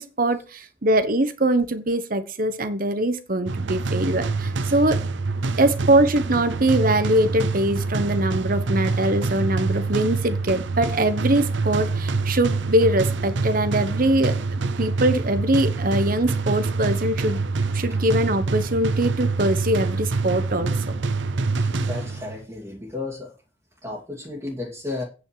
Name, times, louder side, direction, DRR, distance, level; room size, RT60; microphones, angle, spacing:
voice 1, 0.0-5.0 5.6-14.4 14.8-17.4 17.7-20.7, right 1 dB, 45° right, 11 dB, 1.1 m, -22 dB
sound 1, 3.5-22.4, right 3 dB, 65° right, 0.7 m, -26 dB
voice 2, 21.6-23.3 23.8-25.0, left 3 dB, 15° right, -3 dB, 2.1 m, -33 dB
9.3 x 6.0 x 6.5 m, 0.33 s
head